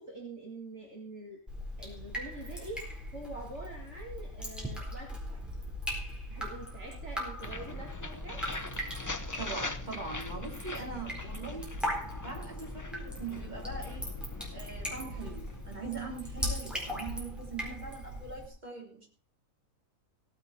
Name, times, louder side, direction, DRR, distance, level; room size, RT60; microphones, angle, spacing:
voice 1, 0.0-1.4 1.8-5.4 6.0-8.4, right 2 dB, 50° right, 0 dB, 2.6 m, -45 dB
Drip, 1.5-18.5, equal, ahead, 4.1 m, -39 dB
sound 1, 7.4-17.2, left 2 dB, 20° left, 0.6 m, -43 dB
voice 2, 9.4-11.7 12.2-14.1 14.5-19.1, right 4 dB, 30° right, 0 dB, 3.7 m, -41 dB
16.5 x 10.0 x 4.4 m, 0.40 s
omnidirectional pair, 1.6 m